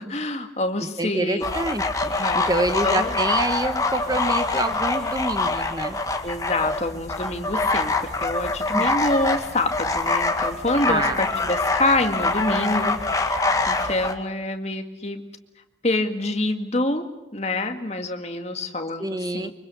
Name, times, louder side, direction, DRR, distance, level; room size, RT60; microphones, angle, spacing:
voice 1, 0.0-1.4 2.1-3.1 6.2-15.2 15.8-17.1 17.3-19.5, left 2 dB, 35° left, 6 dB, 1.9 m, -26 dB
voice 2, 1.0-6.0 8.7-8.9 10.9-11.2 19.0-19.5, right 2 dB, 20° right, 10 dB, 1.2 m, -27 dB
sound 1, 1.4-14.1, left 3 dB, 20° left, 1.8 m, -24 dB
24.5 x 24.0 x 7.0 m, 1.0 s
head